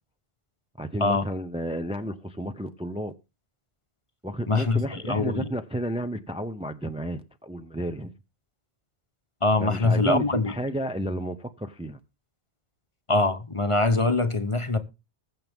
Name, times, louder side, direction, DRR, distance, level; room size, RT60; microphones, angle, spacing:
voice 1, 0.8-3.1 4.2-8.1 9.6-12.0, right 1 dB, 5° right, 0.7 m, -32 dB
voice 2, 4.5-5.5 9.4-10.5 13.1-14.8, left 2 dB, 30° left, 1.1 m, -23 dB
20.5 x 7.6 x 3.6 m
omnidirectional pair, 1.1 m